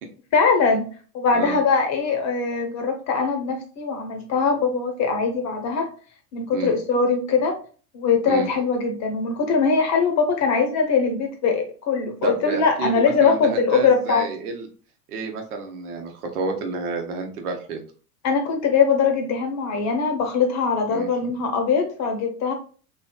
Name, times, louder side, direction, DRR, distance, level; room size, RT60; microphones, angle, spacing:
voice 1, 0.3-0.8 1.1-5.9 6.3-7.5 7.9-14.3 18.2-22.5, left 5 dB, 35° left, 5 dB, 0.8 m, -21 dB
voice 2, 12.2-14.7 15.1-17.8 20.9-21.1, right 4 dB, 70° right, 4 dB, 0.9 m, -30 dB
3.2 x 2.6 x 2.2 m, 0.40 s
hypercardioid pair, 85°, 46 cm